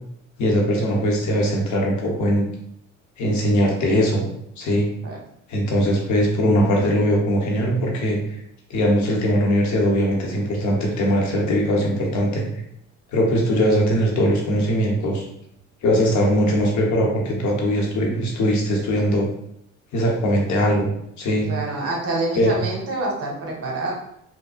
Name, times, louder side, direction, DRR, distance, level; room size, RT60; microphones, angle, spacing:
voice 1, 0.4-2.5 3.2-4.2 4.6-4.9 5.5-8.4 8.7-12.5 13.1-15.2 15.8-19.3 19.9-20.9 21.2-21.5 22.4-22.5, equal, 70° left, -1 dB, 0.8 m, -20 dB
voice 2, 21.4-23.9, right 2 dB, 55° right, -1 dB, 0.9 m, -27 dB
3.5 x 2.0 x 2.3 m, 0.76 s
cardioid pair, 90°, 30 cm